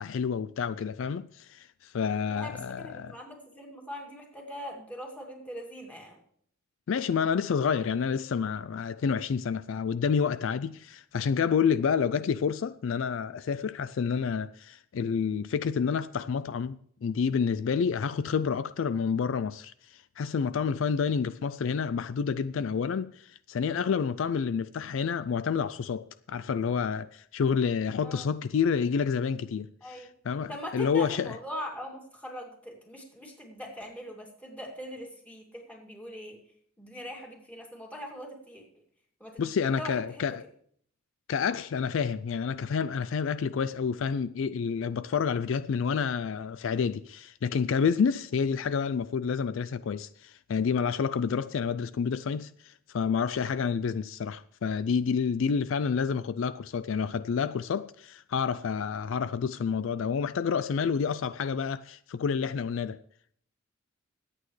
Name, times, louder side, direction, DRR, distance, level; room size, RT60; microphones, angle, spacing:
voice 1, 0.0-3.1 6.9-31.4 39.4-40.4 41.3-63.0, left 6 dB, 65° left, 0.4 m, -29 dB
voice 2, 2.3-6.2 28.0-28.3 29.8-30.1 30.5-36.4 36.8-38.6 39.2-39.5 39.8-40.2, equal, 5° left, 2.6 m, -41 dB
22.0 x 8.6 x 3.2 m
head